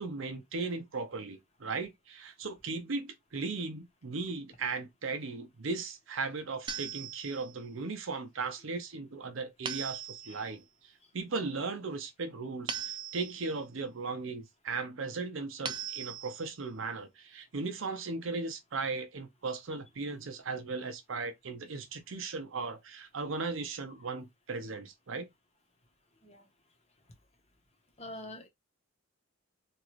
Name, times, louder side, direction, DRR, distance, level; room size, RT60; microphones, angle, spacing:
voice 1, 0.0-10.6 11.1-12.7 13.1-25.3, right 4 dB, 65° right, 0.6 m, -37 dB
sound 1, 6.7-7.6 9.7-10.5 12.7-13.6 15.6-16.6, right 8 dB, 25° right, 0.3 m, -39 dB
voice 2, 28.0-28.5, left 1 dB, 30° left, 0.9 m, -47 dB
3.0 x 2.4 x 3.0 m
head